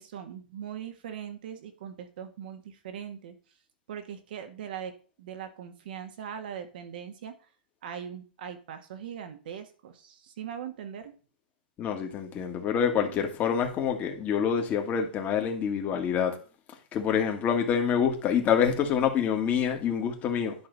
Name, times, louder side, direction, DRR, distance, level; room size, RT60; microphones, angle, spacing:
voice 1, 0.0-3.3 3.9-7.3 7.8-11.1, right 8 dB, 65° right, 1.8 m, -40 dB
voice 2, 11.8-16.3 16.9-20.5, left 7 dB, 30° left, 2.0 m, -26 dB
10.5 x 5.8 x 4.1 m
hypercardioid pair, 120°, 5 cm